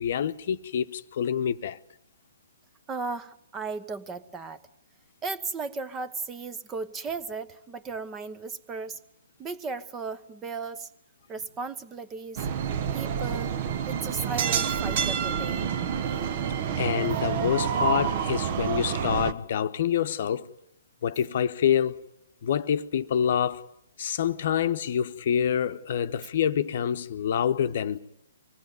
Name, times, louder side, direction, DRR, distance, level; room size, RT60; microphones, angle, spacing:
voice 1, 0.0-1.8 16.8-20.5 21.0-22.0 22.4-23.7 24.0-28.0, left 8 dB, 50° left, 0.9 m, -26 dB
voice 2, 2.9-4.6 5.2-9.0 9.4-10.9 11.3-12.5 12.9-13.5 13.9-15.6, right 4 dB, 15° right, 1.0 m, -35 dB
sound 1, 12.4-19.3, right 7 dB, 40° right, 1.1 m, -28 dB
24.5 x 18.0 x 9.5 m
figure-of-eight pair, 130°, 0 cm